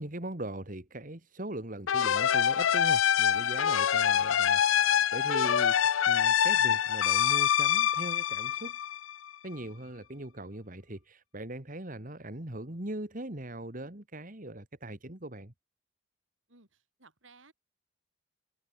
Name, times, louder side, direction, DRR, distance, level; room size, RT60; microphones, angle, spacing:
voice 1, 0.0-8.8 9.4-15.5, right 1 dB, 45° right, 2.6 m, -40 dB
sound 1, 1.9-9.3, left 9 dB, 85° left, 0.5 m, -25 dB
voice 2, 3.3-3.7 16.5-17.5, right 3 dB, 80° right, 6.3 m, -59 dB
open air
head